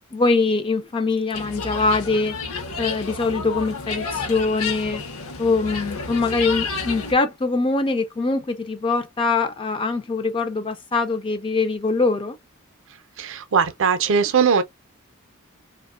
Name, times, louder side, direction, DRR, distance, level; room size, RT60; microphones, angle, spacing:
voice 1, 0.1-2.3 2.8-5.0 5.4-12.4, left 3 dB, 25° left, 0.3 m, -23 dB
sound 1, 1.3-7.1, left 4 dB, 70° left, 0.7 m, -30 dB
voice 2, 13.2-14.6, right 6 dB, 60° right, 0.5 m, -20 dB
2.8 x 2.1 x 2.3 m
head